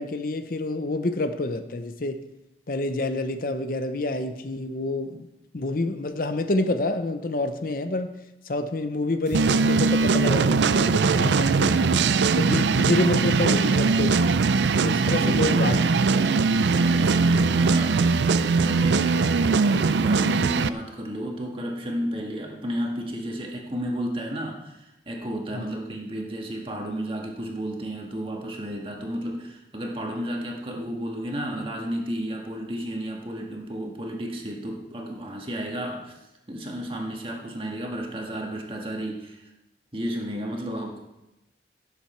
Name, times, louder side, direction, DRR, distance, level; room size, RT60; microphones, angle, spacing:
voice 1, 0.0-2.3 2.7-5.3 5.5-8.1 8.5-12.0 12.3-14.4 14.8-15.8 16.1-16.3 25.5-25.7, left 2 dB, 50° left, 9 dB, 0.7 m, -28 dB
sound 1, 9.3-20.7, right 4 dB, 85° right, 0.5 m, -21 dB
voice 2, 15.2-16.4 16.8-36.2 36.5-39.5 39.9-41.0, equal, 30° right, 0 dB, 1.8 m, -32 dB
16.5 x 7.4 x 4.4 m, 0.94 s
head